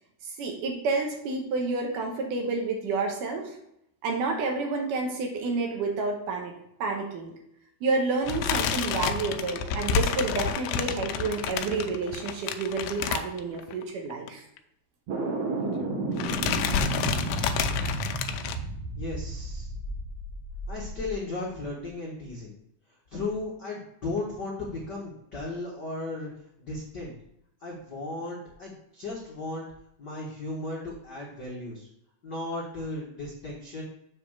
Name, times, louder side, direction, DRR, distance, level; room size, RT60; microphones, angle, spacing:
voice 1, 0.4-3.5 4.0-6.5 6.8-7.3 7.8-14.4, right 3 dB, 70° right, 2 dB, 2.4 m, -29 dB
sound 1, 8.3-13.8 14.1-14.3 14.6-14.7 15.6-15.9 16.2-18.6, left 7 dB, 85° left, 2.4 m, -29 dB
sound 2, 15.1-21.1, right 3 dB, 55° right, 2.0 m, -32 dB
voice 2, 19.0-19.7 20.7-22.5 23.1-26.3 26.6-27.1 27.6-29.6 30.0-31.9 32.2-33.8, left 2 dB, 65° left, -4 dB, 1.0 m, -35 dB
7.4 x 3.6 x 6.5 m, 0.76 s
omnidirectional pair, 4.2 m